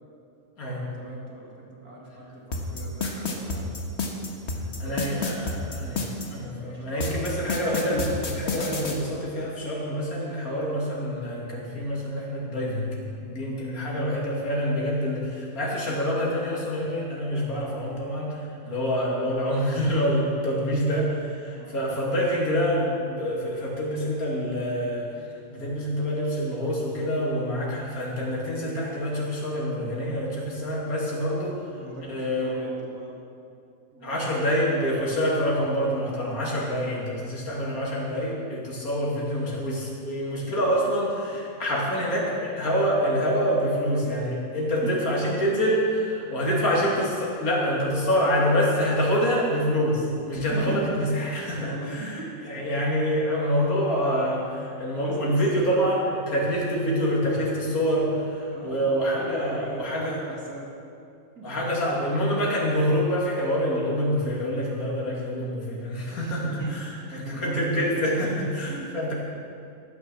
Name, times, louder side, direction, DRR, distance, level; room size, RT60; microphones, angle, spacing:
voice 1, 0.7-3.7 4.5-5.8 6.5-7.5 13.7-14.1 18.6-18.7 21.4-21.8 31.8-33.3 33.9-34.6 36.6-36.9 44.7-44.9 50.3-50.8 51.5-52.3 55.0-55.4 58.5-60.7 61.3-61.5 66.1-66.8 67.1-68.9, right 2 dB, 85° right, -3 dB, 3.1 m, -40 dB
sound 1, 2.5-6.3 7.0-9.0, left 3 dB, 50° left, 1.6 m, -29 dB
voice 2, 4.8-12.9 13.2-25.1 25.5-31.6 32.1-32.7 34.0-52.2 52.5-60.2 61.4-66.9 67.1-69.1, equal, 75° left, -4 dB, 3.0 m, -26 dB
13.5 x 9.4 x 7.0 m, 2.5 s
omnidirectional pair, 1.5 m